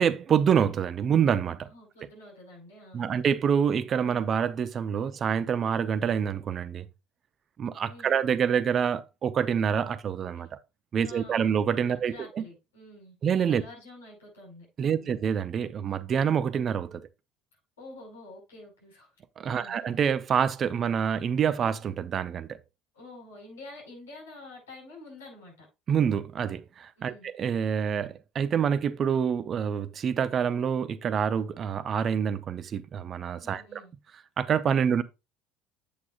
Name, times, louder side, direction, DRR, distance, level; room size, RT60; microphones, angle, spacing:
voice 1, 0.0-1.7 2.9-6.9 7.6-10.5 10.9-12.4 13.2-13.6 14.8-17.1 19.4-22.6 25.9-33.8 34.4-35.0, right 7 dB, 40° right, 0.7 m, -26 dB
voice 2, 1.7-3.1 7.9-8.2 11.0-11.6 11.8-13.2 13.4-15.2 17.5-19.1 19.4-19.8 22.9-25.7 27.0-27.3 33.4-33.9, left 2 dB, 75° left, 5.4 m, -48 dB
8.4 x 8.4 x 2.5 m
figure-of-eight pair, 60°, 0 cm